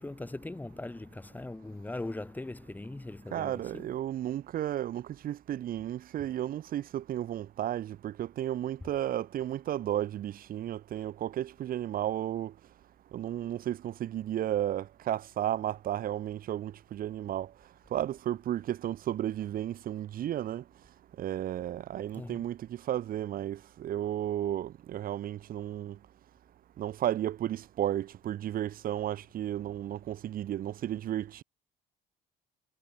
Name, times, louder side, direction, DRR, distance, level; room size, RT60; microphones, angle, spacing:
voice 1, 0.0-3.8 22.2-22.4, left 2 dB, 10° left, 1.2 m, -40 dB
voice 2, 3.3-12.5 13.1-17.5 17.9-20.6 21.2-26.0 26.8-31.4, right 12 dB, 60° right, 1.3 m, -33 dB
cardioid pair, 110°, 17 cm